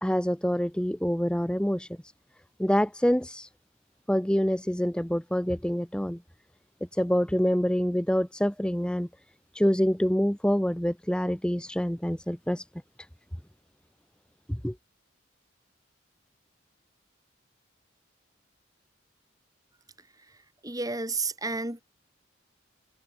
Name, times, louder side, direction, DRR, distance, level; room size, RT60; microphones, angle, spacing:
voice 1, 0.0-1.9 2.6-3.5 4.1-6.2 6.9-9.1 9.5-12.6 14.5-14.7, equal, 5° left, 0.8 m, -26 dB
voice 2, 20.6-21.8, right 3 dB, 20° right, 3.1 m, -31 dB
head